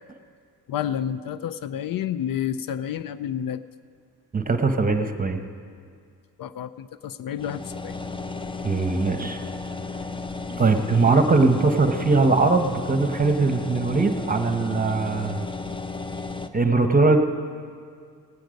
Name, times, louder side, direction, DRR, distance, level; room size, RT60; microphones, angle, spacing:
voice 1, 0.7-3.6 6.4-8.0, left 9 dB, 60° left, 14 dB, 0.5 m, -30 dB
voice 2, 4.3-5.4 8.6-9.4 10.6-15.5 16.5-17.2, right 3 dB, 20° right, 7 dB, 1.0 m, -21 dB
sound 1, 7.4-16.5, left 3 dB, 15° left, 0.6 m, -34 dB
17.5 x 9.3 x 5.2 m, 2.1 s
cardioid pair, 85°, 38 cm